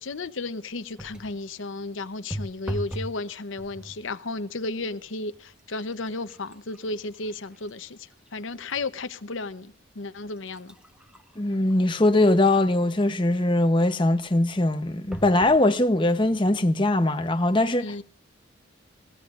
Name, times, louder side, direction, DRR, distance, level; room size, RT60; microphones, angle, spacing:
voice 1, 0.0-10.7 17.8-18.0, left 3 dB, 70° left, 0.8 m, -34 dB
sound 1, 1.0-1.4 2.3-3.2 3.6-4.1 4.8-4.9 5.3-8.9 9.4-9.5 10.2-12.9 15.1-15.6 16.3-16.4 16.7-16.8, equal, 5° right, 1.0 m, -40 dB
voice 2, 11.4-17.9, left 1 dB, 25° left, 0.8 m, -21 dB
22.5 x 17.0 x 2.5 m
head